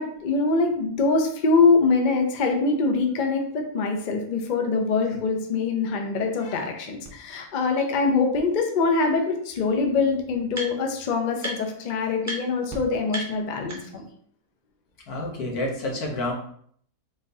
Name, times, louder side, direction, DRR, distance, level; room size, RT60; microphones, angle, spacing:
voice 1, 0.0-14.0, left 4 dB, 50° left, 3 dB, 0.5 m, -24 dB
sound 1, 7.0-7.1 7.8-7.9 9.2-9.3 9.5-11.0 11.4-11.8 12.2-12.4 12.7-12.8 13.1-14.1, right 1 dB, 15° right, 0.6 m, -36 dB
voice 2, 15.1-16.3, left 1 dB, 85° left, -1 dB, 1.6 m, -29 dB
3.9 x 3.9 x 2.7 m, 0.62 s
omnidirectional pair, 1.5 m